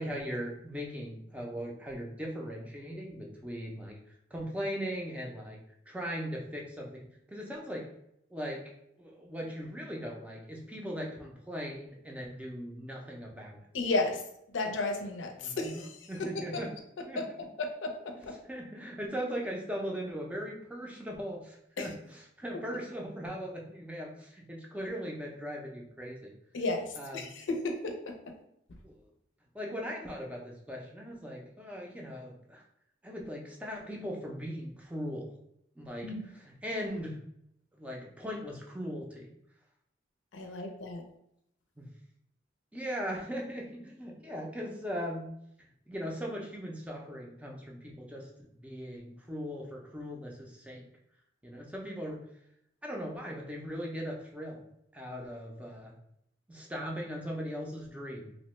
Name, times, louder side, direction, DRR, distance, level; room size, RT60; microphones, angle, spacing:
voice 1, 0.0-4.0 4.3-5.6 5.9-7.9 8.3-8.7 9.0-13.6 15.4-16.7 17.1-17.2 18.5-26.3 27.0-27.4 28.8-28.9 29.5-32.6 33.0-35.3 35.8-37.2 37.8-39.3 41.8-41.9 42.7-45.3 45.6-50.8 51.4-52.2 52.8-54.6 54.9-55.9 56.5-58.4, equal, 5° right, -1 dB, 0.4 m, -39 dB
voice 2, 13.7-14.2 14.5-16.6 17.6-18.4 21.8-21.9 26.5-28.1 36.0-36.2 40.3-41.0, left 2 dB, 90° left, 3 dB, 0.5 m, -33 dB
2.9 x 2.1 x 3.0 m, 0.74 s
head